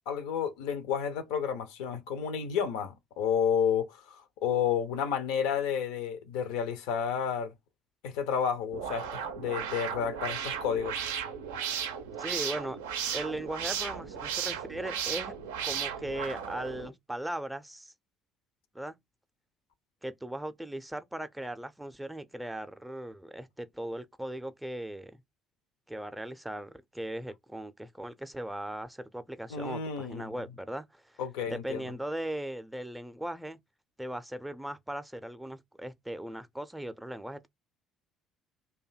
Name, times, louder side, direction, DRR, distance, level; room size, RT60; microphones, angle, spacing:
voice 1, 0.1-7.5 8.0-11.0 29.5-30.3 31.2-31.8, left 7 dB, 65° left, 0.5 m, -31 dB
sound 1, 8.7-16.9, right 8 dB, 75° right, 0.4 m, -35 dB
voice 2, 12.2-12.8 13.1-15.3 15.6-17.9 18.7-18.9 20.0-25.2 25.9-31.2 31.5-33.6 34.0-37.5, right 1 dB, 5° right, 0.5 m, -38 dB
2.6 x 2.2 x 4.0 m
figure-of-eight pair, 50°, 0 cm